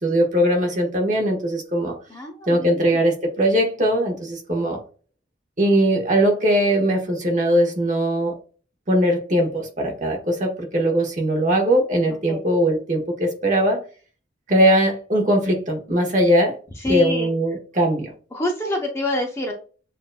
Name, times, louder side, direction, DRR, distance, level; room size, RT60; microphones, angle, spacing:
voice 1, 0.0-2.0 2.5-4.8 5.6-8.4 8.9-13.8 14.5-16.6 16.9-18.1, equal, 40° right, 2 dB, 1.2 m, -20 dB
voice 2, 2.1-3.0 12.1-12.4 16.8-17.3 18.3-19.5, left 1 dB, 15° left, 1 dB, 0.7 m, -27 dB
7.1 x 2.6 x 2.2 m, 0.38 s
head